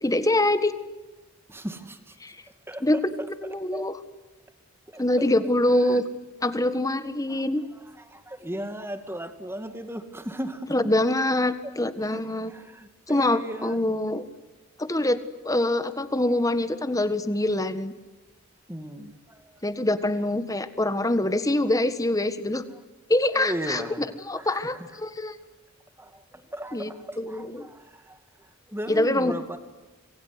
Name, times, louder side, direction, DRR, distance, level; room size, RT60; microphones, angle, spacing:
voice 1, 0.0-0.7 2.2-2.4 2.8-3.9 5.0-6.0 6.4-7.6 10.7-12.5 13.1-14.2 14.8-15.2 15.4-17.9 19.6-22.6 23.1-25.4 26.7-26.9 27.2-27.7 28.9-29.3, left 1 dB, 15° left, 12 dB, 1.5 m, -24 dB
voice 2, 1.5-2.2 2.7-2.8 3.7-3.9 4.9-5.3 8.0-10.8 12.1-12.2 12.5-13.8 18.7-19.6 23.3-24.8 26.0-28.2 28.7-29.6, equal, 10° right, 8 dB, 2.4 m, -36 dB
27.0 x 23.5 x 9.5 m, 1.2 s
head